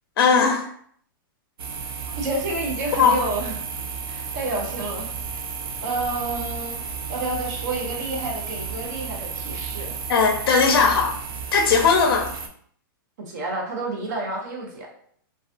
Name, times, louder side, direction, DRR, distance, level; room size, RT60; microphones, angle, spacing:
voice 1, 0.2-0.6 3.0-3.2 10.1-11.1 11.5-12.3, left 5 dB, 85° left, 3 dB, 0.4 m, -18 dB
sound 1, 1.6-12.5, right 6 dB, 85° right, 0.4 m, -32 dB
voice 2, 2.1-3.6 4.1-5.1 5.8-9.9 13.2-14.9, right 2 dB, 50° right, 0 dB, 0.7 m, -30 dB
2.3 x 2.3 x 2.4 m, 0.63 s
supercardioid pair, 165°, 12 cm